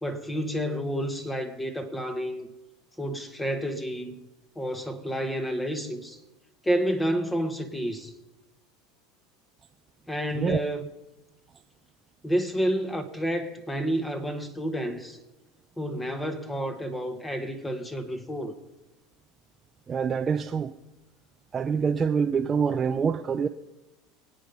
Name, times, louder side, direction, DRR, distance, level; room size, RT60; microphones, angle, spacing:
voice 1, 0.0-2.5 3.0-4.2 4.5-6.2 6.6-8.1 10.1-10.9 12.2-15.2 15.8-18.5, equal, 10° left, 1.5 m, -30 dB
voice 2, 19.9-20.7 21.5-23.5, right 6 dB, 25° right, 0.6 m, -25 dB
24.0 x 9.0 x 5.3 m
supercardioid pair, 105°, 0 cm